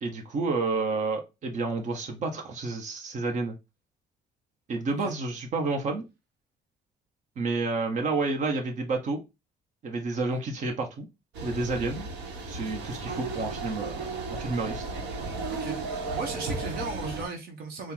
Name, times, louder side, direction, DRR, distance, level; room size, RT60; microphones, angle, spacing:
voice 1, 0.0-3.5 4.7-6.0 7.4-9.2 9.8-11.1 11.4-12.1 12.5-14.9, right 3 dB, 45° right, 1.2 m, -30 dB
sound 1, 11.3-17.2, right 3 dB, 85° right, 1.2 m, -34 dB
voice 2, 16.1-17.9, right 3 dB, 65° right, 1.1 m, -36 dB
4.4 x 2.4 x 3.9 m
cardioid pair, 110°, 17 cm